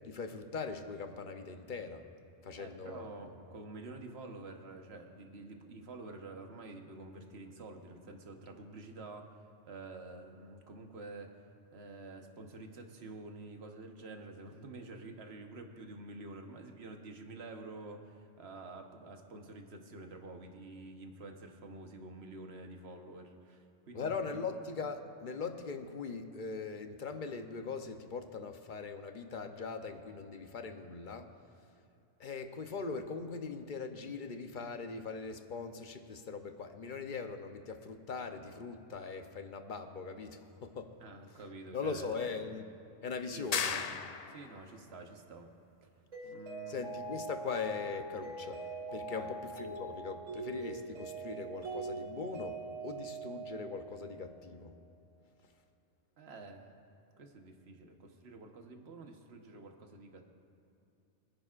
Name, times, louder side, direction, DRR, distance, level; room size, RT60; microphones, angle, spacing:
voice 1, 0.0-2.0 2.4-3.1 23.9-31.3 32.2-40.9 41.7-42.6 43.0-43.7 46.7-48.6 48.9-54.7, left 4 dB, 45° left, 7 dB, 0.8 m, -41 dB
voice 2, 2.6-9.3 9.7-11.3 11.7-24.5 41.0-42.3 43.3-44.0 44.3-45.5 45.8-45.9 46.2-46.8 49.1-49.3 56.2-56.8 57.2-60.3, right 2 dB, 55° right, 4 dB, 1.4 m, -48 dB
sound 1, 43.5-44.6, left 6 dB, 70° left, 0.3 m, -35 dB
Mallet percussion, 46.1-54.3, right 3 dB, 75° right, 3.7 m, -42 dB
26.5 x 10.0 x 2.5 m, 2.8 s
omnidirectional pair, 1.3 m